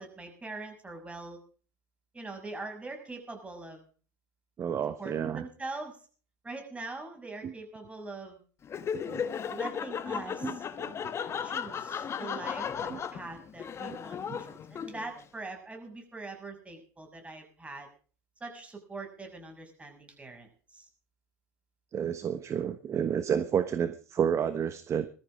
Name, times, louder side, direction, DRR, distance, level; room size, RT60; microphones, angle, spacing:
voice 1, 0.0-1.4 2.1-3.8 5.0-6.0 6.4-8.4 9.5-10.6 11.4-14.2 14.5-17.9 18.4-20.9, right 3 dB, 15° right, 4 dB, 6.8 m, -42 dB
voice 2, 4.6-5.4 7.4-7.5 9.1-9.3 10.4-10.9 12.9-13.0 13.9-14.0 14.3-14.4 21.9-25.1, right 8 dB, 30° right, 11 dB, 1.2 m, -30 dB
Laughter, 8.6-15.2, left 7 dB, 30° left, 1.3 m, -35 dB
20.5 x 14.0 x 3.7 m, 0.40 s
hypercardioid pair, 95°, 9 cm